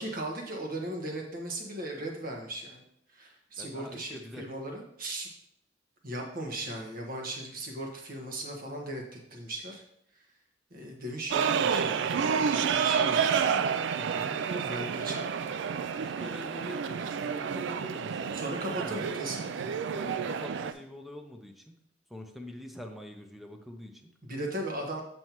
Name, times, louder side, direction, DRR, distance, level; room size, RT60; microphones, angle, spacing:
voice 1, 0.0-2.8 3.1-5.3 6.0-9.8 10.7-13.4 14.6-15.3 17.0-17.1 18.3-19.7 24.2-25.0, right 1 dB, 50° right, 1 dB, 1.3 m, -37 dB
voice 2, 3.6-4.4 14.0-15.2 16.0-18.4 18.7-19.2 19.9-21.8 22.1-24.1, equal, ahead, 4 dB, 0.6 m, -44 dB
sound 1, 11.3-20.7, right 6 dB, 65° right, 0.3 m, -29 dB
7.6 x 5.4 x 3.0 m, 0.74 s
head